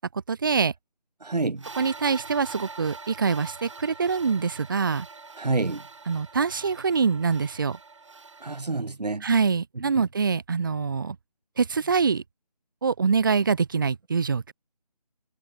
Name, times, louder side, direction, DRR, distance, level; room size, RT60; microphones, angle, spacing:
voice 1, 0.3-0.7 1.8-5.1 6.1-7.8 9.2-11.2 11.6-12.2 12.8-14.5, right 5 dB, 30° right, 1.8 m, -24 dB
voice 2, 1.2-1.7 5.4-5.8 8.4-9.3 9.7-10.0, right 3 dB, 80° right, 1.7 m, -28 dB
sound 1, 1.6-8.6, right 4 dB, 45° right, 3.3 m, -44 dB
figure-of-eight pair, 170°, 21 cm